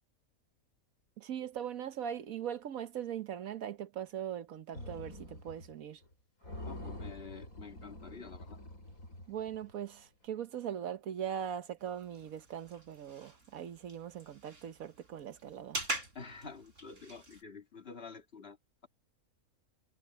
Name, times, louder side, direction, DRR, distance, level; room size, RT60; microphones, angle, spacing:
voice 1, 1.2-6.0 9.3-15.8, right 9 dB, 75° right, 1.4 m, -40 dB
sound 1, 4.7-5.7 6.0-6.1 6.4-9.8, left 1 dB, 80° left, 7.5 m, -46 dB
voice 2, 6.6-8.6 16.1-18.6, left 5 dB, 45° left, 2.1 m, -48 dB
sound 2, 11.8-17.4, right 1 dB, 60° right, 5.2 m, -44 dB
omnidirectional pair, 1.5 m